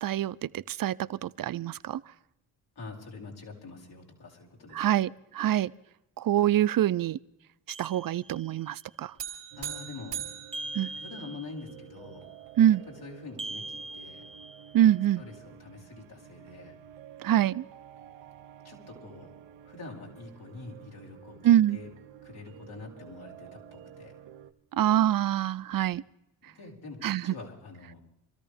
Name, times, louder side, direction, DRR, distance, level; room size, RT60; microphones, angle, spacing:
voice 1, 0.0-2.0 4.7-5.7 6.2-7.2 7.8-9.1 10.7-10.9 12.6-12.8 14.7-15.2 17.2-17.6 21.4-21.8 24.7-26.0 27.0-27.3, right 11 dB, 50° right, 0.6 m, -25 dB
voice 2, 2.8-4.8 9.6-10.2 10.9-12.2 12.9-14.2 15.2-16.8 18.6-19.3 19.6-21.4 21.7-21.9 22.2-24.1 26.5-28.0, left 3 dB, 60° left, 5.6 m, -45 dB
sound 1, 7.7-8.7 10.5-11.8 13.4-14.9, right 2 dB, 15° right, 1.0 m, -41 dB
sound 2, 9.2-11.7, right 10 dB, 70° right, 3.1 m, -40 dB
sound 3, 9.5-24.5, right 10 dB, 90° right, 1.0 m, -51 dB
26.5 x 13.5 x 3.5 m
supercardioid pair, 60°, 43 cm